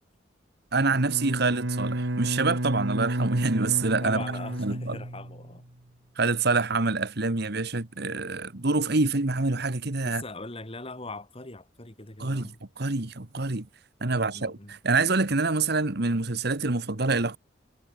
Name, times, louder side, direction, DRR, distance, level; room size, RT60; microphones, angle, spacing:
voice 1, 0.7-4.2 4.6-5.0 6.2-10.2 12.2-13.7 14.0-17.4, right 3 dB, 60° right, 1.6 m, -26 dB
Bowed string instrument, 0.9-5.6, right 1 dB, 80° right, 2.2 m, -31 dB
voice 2, 4.0-5.6 10.0-12.6 14.1-14.8, left 2 dB, 30° left, 4.2 m, -41 dB
head